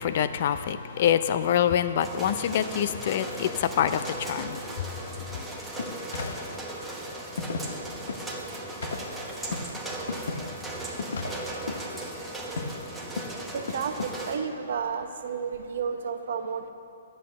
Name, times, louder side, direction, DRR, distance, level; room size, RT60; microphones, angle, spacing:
voice 1, 0.0-5.4, left 9 dB, 40° left, 12 dB, 0.4 m, -26 dB
sound 1, 2.0-14.4, right 2 dB, 5° right, 0.9 m, -37 dB
sound 2, 5.3-15.0, left 3 dB, 80° left, 1.0 m, -37 dB
voice 2, 13.5-16.7, right 6 dB, 60° right, 7 dB, 0.7 m, -32 dB
9.2 x 7.7 x 7.5 m, 2.5 s
hypercardioid pair, 165°, 0 cm